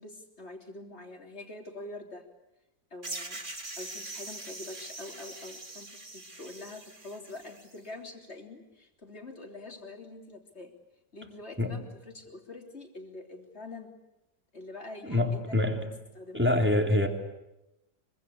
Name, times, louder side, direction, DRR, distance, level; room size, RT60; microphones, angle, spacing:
voice 1, 0.0-2.3 2.9-3.4 3.8-10.7 11.1-13.9 14.5-16.5, left 2 dB, 35° left, 4 dB, 3.6 m, -45 dB
sound 1, 3.0-7.8, right 2 dB, 25° right, 2.5 m, -42 dB
voice 2, 15.0-15.9 16.3-17.1, left 1 dB, 5° right, 4 dB, 3.2 m, -25 dB
25.0 x 24.5 x 8.4 m, 0.90 s
omnidirectional pair, 2.0 m